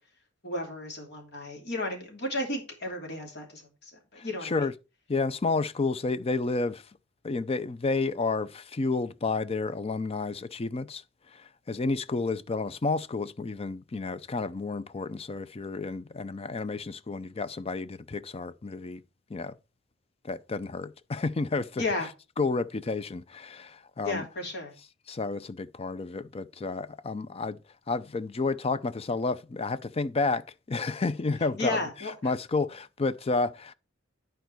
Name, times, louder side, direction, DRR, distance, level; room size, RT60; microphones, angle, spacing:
voice 1, 0.4-4.5 21.8-22.1 24.0-24.7 31.6-32.1, left 2 dB, 60° left, 2.9 m, -33 dB
voice 2, 4.2-4.7 5.1-6.9 7.2-19.0 19.3-19.6 20.2-21.8 22.4-24.3 25.1-27.6 27.9-31.8 32.2-33.7, left 3 dB, 30° left, 0.5 m, -31 dB
10.5 x 4.6 x 4.5 m
head